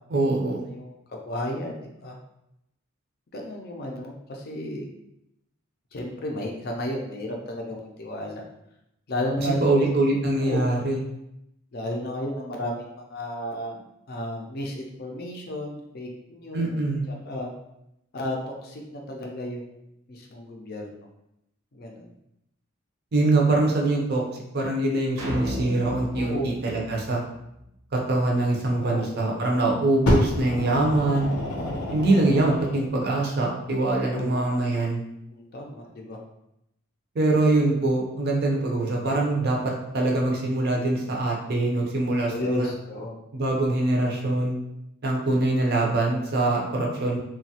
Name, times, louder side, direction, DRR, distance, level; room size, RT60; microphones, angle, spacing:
voice 1, 0.1-0.6 9.4-11.0 16.5-17.1 23.1-24.2 24.5-27.2 27.9-31.3 31.9-35.0 37.1-42.7 43.3-44.6 45.0-47.2, right 2 dB, 45° right, -1 dB, 0.5 m, -23 dB
voice 2, 0.7-1.7 2.0-2.2 3.3-4.9 5.9-8.4 9.1-9.9 10.4-10.7 11.7-13.8 14.1-16.8 17.1-17.5 18.1-19.6 20.1-21.0 21.7-22.1 26.2-26.5 28.7-29.0 31.5-31.8 33.9-34.8 35.3-36.2 42.3-43.2, left 1 dB, 45° left, 0 dB, 0.4 m, -33 dB
sound 1, 25.2-27.6, equal, 85° right, 0.8 m, -35 dB
Fire, 30.1-32.9 33.7-33.8, left 1 dB, 90° left, 0.6 m, -27 dB
2.9 x 2.2 x 2.7 m, 0.83 s
head